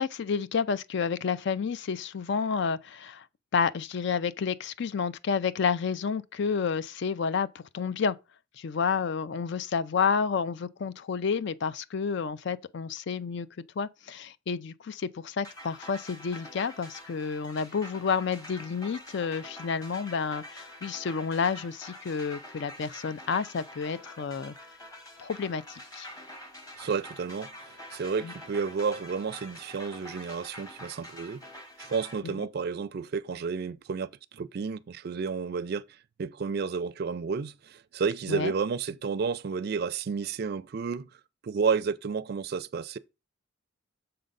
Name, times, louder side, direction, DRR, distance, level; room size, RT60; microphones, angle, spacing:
voice 1, 0.0-3.2 3.5-8.2 8.6-13.5 13.8-24.5 25.2-26.1 28.2-28.3 32.2-32.5 38.3-38.5, left 6 dB, 60° left, 0.4 m, -30 dB
sound 1, 15.4-32.2, left 1 dB, 20° left, 1.8 m, -46 dB
voice 2, 26.8-31.4 31.8-35.8 36.2-41.1 41.4-43.0, right 5 dB, 55° right, 0.4 m, -31 dB
6.7 x 3.8 x 5.2 m
head